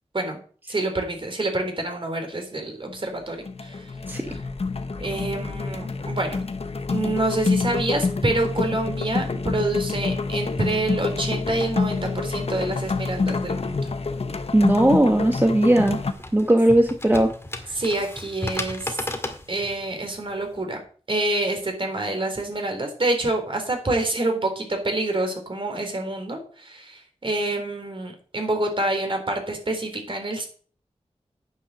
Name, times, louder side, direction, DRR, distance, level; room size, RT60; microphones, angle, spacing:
voice 1, 0.7-3.9 5.0-6.4 6.9-13.7 17.7-19.0 19.5-20.8 21.1-30.5, right 2 dB, 50° right, 4 dB, 3.4 m, -27 dB
sound 1, 2.9-3.2 3.4-16.1, left 4 dB, 60° left, 1.0 m, -27 dB
voice 2, 14.5-16.0 16.3-17.3, right 1 dB, 15° right, 4 dB, 1.1 m, -18 dB
sound 2, 15.2-20.6, left 1 dB, 20° left, 1.9 m, -35 dB
9.4 x 7.0 x 6.4 m, 0.43 s
wide cardioid pair, 70°, 12 cm